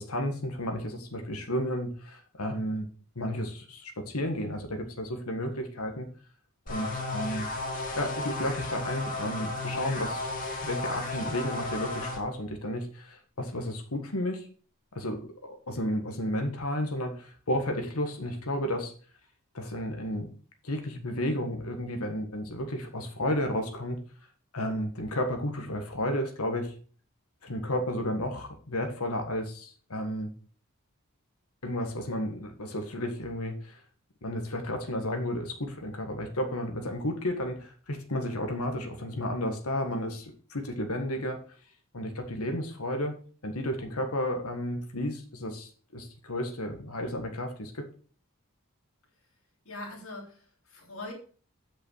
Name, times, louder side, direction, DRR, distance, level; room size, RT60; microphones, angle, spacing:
voice 1, 0.0-2.9 3.1-6.1 6.7-7.5 7.9-10.2 10.6-14.5 14.9-18.9 19.5-20.3 20.6-24.0 24.5-26.7 27.4-30.3 31.6-33.8 34.2-41.4 41.9-43.2 43.4-47.8, left 1 dB, 85° left, 5 dB, 1.7 m, -32 dB
sound 1, 6.7-12.2, left 2 dB, 40° left, 2.5 m, -34 dB
voice 2, 49.6-51.1, left 2 dB, 70° left, 0 dB, 3.7 m, -42 dB
8.2 x 6.2 x 6.4 m, 0.42 s
head